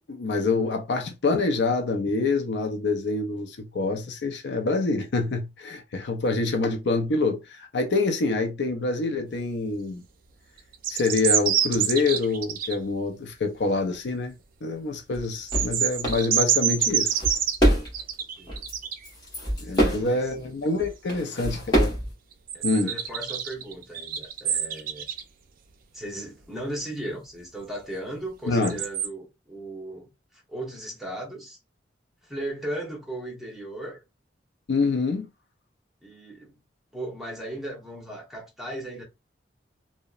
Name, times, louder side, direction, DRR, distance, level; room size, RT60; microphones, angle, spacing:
voice 1, 0.1-10.0 10.9-14.3 14.6-17.1 19.6-21.9 22.6-22.9 28.5-28.8 34.7-35.3, left 3 dB, 65° left, 0.5 m, -26 dB
sound 1, 10.7-12.7 15.3-19.1 22.5-25.2 28.6-29.1, right 9 dB, 50° right, 0.4 m, -26 dB
sound 2, 15.1-15.2 15.5-15.7 16.0-16.2 16.8-18.1 18.5-18.8 19.0-20.1 20.8-22.1, right 1 dB, 25° left, 1.1 m, -25 dB
voice 2, 19.7-20.3 21.1-21.5 22.5-25.1 25.9-30.1 30.5-31.6 32.2-34.0 36.0-36.6 36.9-39.0, right 1 dB, ahead, 0.9 m, -37 dB
2.7 x 2.1 x 2.3 m
head